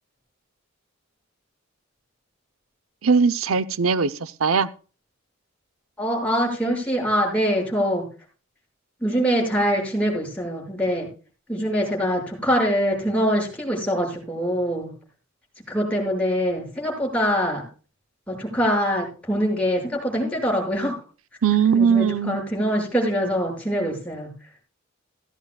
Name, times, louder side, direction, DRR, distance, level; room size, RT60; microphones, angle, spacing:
voice 1, 3.0-4.7 21.4-22.4, right 6 dB, 90° right, 13 dB, 0.7 m, -20 dB
voice 2, 6.0-8.0 9.0-11.1 11.5-14.9 15.7-17.6 18.3-20.9 21.7-24.3, equal, 5° left, -2 dB, 6.9 m, -24 dB
16.0 x 14.0 x 2.4 m, 0.36 s
head